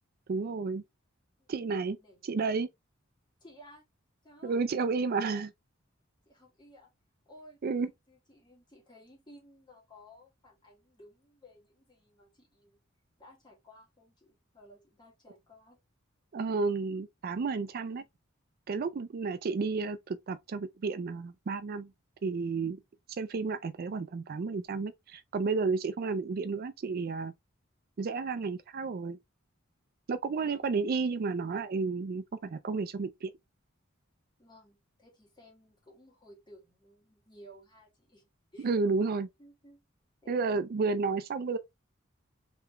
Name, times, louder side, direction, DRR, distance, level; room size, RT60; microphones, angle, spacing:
voice 1, 0.3-0.8 1.5-2.0 2.2-2.7 4.4-5.5 7.6-7.9 16.3-18.0 18.7-21.9 22.2-22.8 23.2-27.3 28.0-29.2 30.1-33.3 38.6-39.3 40.3-41.6, right 4 dB, 50° right, 0.4 m, -31 dB
voice 2, 1.8-2.4 3.4-3.9 4.2-4.7 6.3-6.9 7.3-12.8 13.2-15.8 30.3-30.8 34.4-38.7 39.4-39.8 40.2-40.7, left 1 dB, 20° left, 1.9 m, -57 dB
3.8 x 3.4 x 3.2 m
head